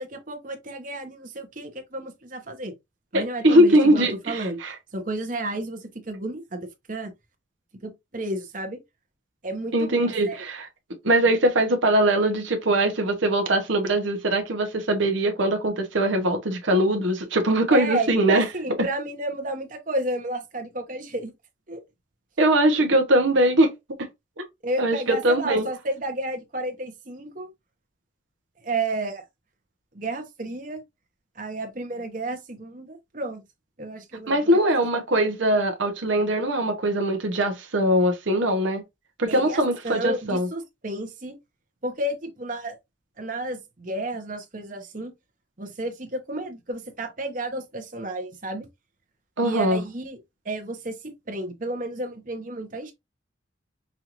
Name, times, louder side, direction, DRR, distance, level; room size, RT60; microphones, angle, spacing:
voice 1, 0.0-2.7 3.1-4.6 4.9-7.1 7.8-8.8 9.4-10.4 17.7-21.3 21.7-21.8 24.6-27.5 28.6-29.2 29.9-30.8 31.4-33.4 33.8-34.6 39.3-41.4 41.8-42.8 43.2-45.1 45.6-48.7 49.4-50.2 50.4-51.0 51.3-52.9, right 2 dB, 45° right, 1.0 m, -32 dB
voice 2, 3.1-4.7 9.7-10.7 11.0-18.4 22.4-23.7 24.8-25.7 34.3-38.8 39.2-40.5 49.4-49.8, right 1 dB, 80° right, 1.0 m, -21 dB
5.5 x 2.6 x 3.0 m
head